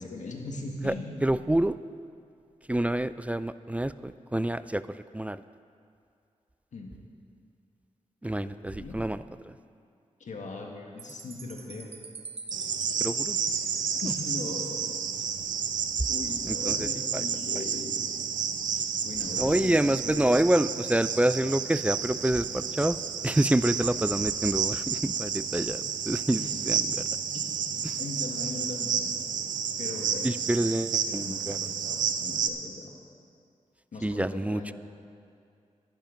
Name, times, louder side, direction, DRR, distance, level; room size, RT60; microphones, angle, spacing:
voice 1, 0.0-1.3 6.7-6.9 8.2-9.0 10.2-11.9 14.0-14.9 16.1-18.0 18.7-20.6 26.4-26.6 26.9-27.0 27.3-29.2 29.8-30.3 30.6-30.8 31.1-32.9 33.9-34.7, left 3 dB, 70° left, 1 dB, 1.7 m, -39 dB
voice 2, 1.2-1.8 2.7-5.4 8.2-9.5 13.0-13.4 16.5-16.9 17.1-17.2 19.4-23.0 23.2-27.0 30.2-31.6 34.0-34.7, right 1 dB, 10° right, 14 dB, 0.3 m, -27 dB
Chime, 11.0-15.5, right 4 dB, 50° right, 0.8 m, -39 dB
Cricket, 12.5-32.5, right 7 dB, 90° right, 0.6 m, -31 dB
12.0 x 11.0 x 5.2 m, 2.4 s
cardioid pair, 55°, 13 cm